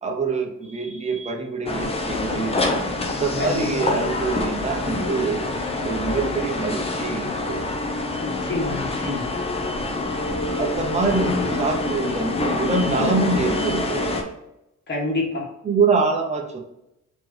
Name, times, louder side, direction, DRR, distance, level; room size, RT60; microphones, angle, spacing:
voice 1, 0.0-2.6 3.1-5.5 5.8-7.6 10.6-14.1 15.6-16.6, right 4 dB, 25° right, 1 dB, 0.8 m, -25 dB
sound 1, 1.6-14.2, left 2 dB, 20° left, 0.6 m, -26 dB
voice 2, 3.4-3.9 8.2-9.3 14.9-15.5, left 2 dB, 35° left, -2 dB, 1.5 m, -27 dB
4.2 x 3.0 x 3.2 m, 0.87 s
cardioid pair, 145°, 29 cm